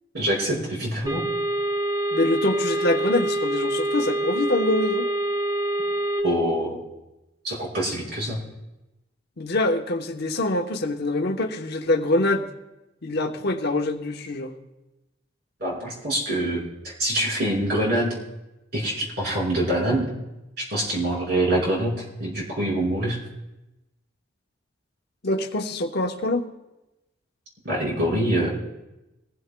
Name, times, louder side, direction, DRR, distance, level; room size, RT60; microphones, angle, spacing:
voice 1, 0.1-1.2 6.2-6.8 7.4-8.4 15.6-18.1 18.7-20.1 20.7-21.9 22.2-23.2 27.6-28.5, right 1 dB, 55° right, -4 dB, 5.1 m, -25 dB
sound 1, 1.1-6.2, right 1 dB, 20° right, 3.5 m, -26 dB
voice 2, 2.1-5.1 9.4-12.5 13.0-14.5 25.2-26.5, left 2 dB, 55° left, 4 dB, 1.0 m, -25 dB
22.5 x 15.5 x 2.2 m, 0.99 s
head